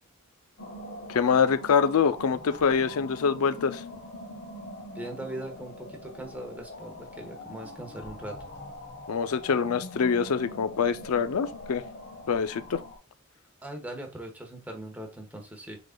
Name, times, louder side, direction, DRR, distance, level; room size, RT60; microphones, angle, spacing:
sound 1, 0.6-13.0, left 1 dB, 50° left, 1.2 m, -43 dB
voice 1, 1.1-3.8 9.1-11.8 12.3-12.8, left 6 dB, 85° left, 0.4 m, -25 dB
voice 2, 4.9-8.4 13.6-15.8, right 1 dB, 5° right, 1.1 m, -40 dB
6.2 x 3.8 x 2.2 m
head